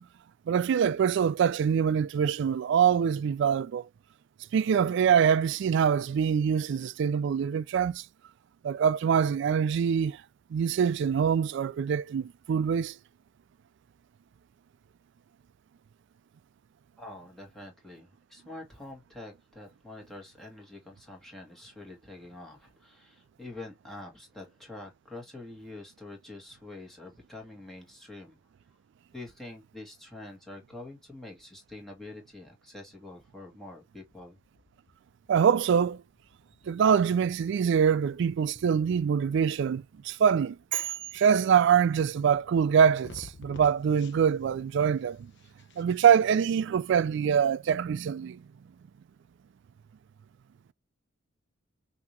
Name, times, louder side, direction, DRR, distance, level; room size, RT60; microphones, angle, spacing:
voice 1, 0.5-3.8 4.5-8.0 8.6-10.2 10.5-12.9 35.3-36.0 36.7-40.9 41.1-45.2 45.8-48.4, right 7 dB, 65° right, 0.3 m, -24 dB
voice 2, 17.0-28.4 29.1-34.4, left 2 dB, ahead, 1.8 m, -46 dB
Metal scrubber against jeans, 34.1-46.3, left 3 dB, 60° left, 0.8 m, -55 dB
5.8 x 2.8 x 3.1 m
head